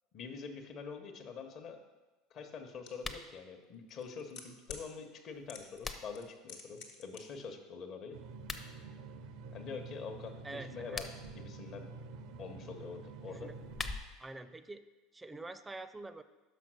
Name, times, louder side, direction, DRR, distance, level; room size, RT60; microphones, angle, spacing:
voice 1, 0.1-1.8 2.3-8.2 9.5-11.1 11.3-11.9 12.4-13.5, left 5 dB, 50° left, 6 dB, 1.0 m, -45 dB
sound 1, 2.9-3.0 3.9-4.9 5.5-5.9 6.1-7.2 7.5-7.6, left 6 dB, 75° left, 1.2 m, -47 dB
sound 2, 2.9-3.3 5.3-6.3 8.3-8.7 10.7-11.4 13.4-14.3, left 3 dB, 25° left, 0.6 m, -43 dB
sound 3, 8.1-13.9, right 4 dB, 65° right, 0.5 m, -48 dB
voice 2, 10.4-11.0 13.3-13.6 14.2-14.8 15.1-16.2, right 2 dB, 15° right, 12 dB, 0.5 m, -46 dB
6.0 x 5.1 x 6.1 m, 1.2 s
hypercardioid pair, 80°, 0 cm